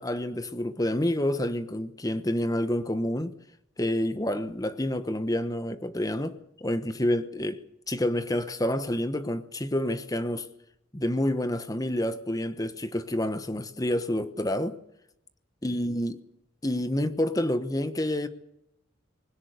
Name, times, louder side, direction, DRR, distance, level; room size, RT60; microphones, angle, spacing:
voice 1, 0.0-3.3 3.8-10.5 10.9-14.8 15.6-16.2 16.6-18.3, left 1 dB, 15° left, 1.0 m, -28 dB
20.5 x 17.0 x 8.1 m
head